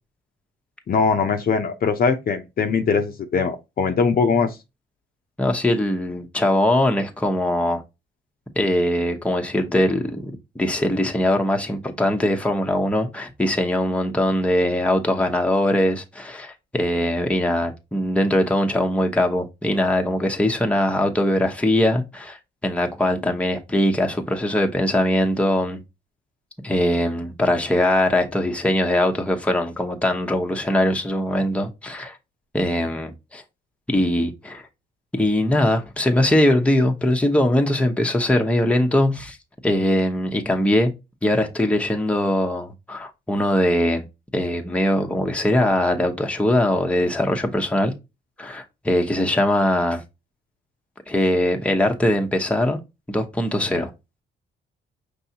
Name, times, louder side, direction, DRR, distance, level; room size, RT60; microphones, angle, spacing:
voice 1, 0.9-4.6, left 5 dB, 45° left, 0.7 m, -21 dB
voice 2, 5.4-7.8 8.6-22.4 22.6-25.8 26.6-32.2 32.5-33.4 33.9-34.6 35.1-39.4 39.6-40.9 41.2-44.0 44.3-47.9 48.4-50.0 51.1-52.8 53.1-53.9, left 1 dB, 5° left, 0.9 m, -21 dB
5.4 x 3.4 x 2.8 m
cardioid pair, 90°, 20 cm